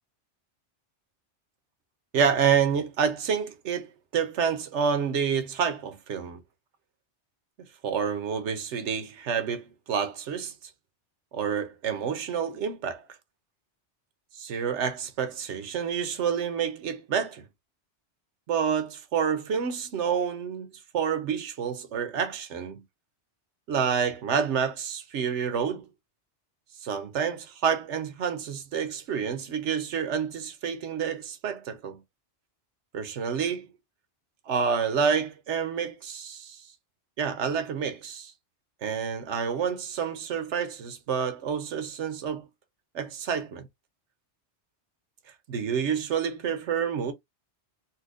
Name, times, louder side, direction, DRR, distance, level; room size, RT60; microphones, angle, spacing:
voice 1, 2.1-6.4 7.8-10.5 11.3-13.1 14.3-17.4 18.5-22.8 23.7-25.9 26.8-32.0 32.9-33.7 34.5-36.6 37.2-38.3 38.8-42.5 42.9-43.7 45.5-47.1, right 7 dB, 85° right, 1.1 m, -28 dB
4.2 x 2.3 x 2.5 m
omnidirectional pair, 1.2 m